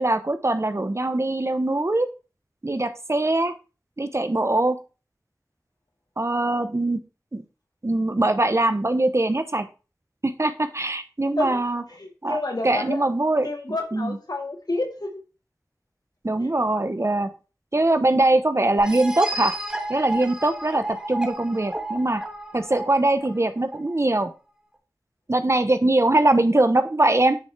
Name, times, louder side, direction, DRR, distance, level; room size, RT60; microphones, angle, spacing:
voice 1, 0.0-2.1 2.6-3.5 4.0-4.8 6.2-7.0 7.3-7.4 7.8-9.7 10.2-11.8 12.2-12.4 12.6-13.5 13.9-14.2 16.2-17.3 17.7-19.5 19.9-22.2 22.5-24.3 25.3-27.4, right 2 dB, 45° right, 10 dB, 0.9 m, -22 dB
voice 2, 11.9-13.1 13.4-15.2 16.4-16.5, left 2 dB, 75° left, 3 dB, 1.9 m, -30 dB
sound 1, 18.8-24.3, right 1 dB, 10° right, 1.5 m, -32 dB
9.8 x 5.5 x 3.3 m, 0.33 s
wide cardioid pair, 45°, 7 cm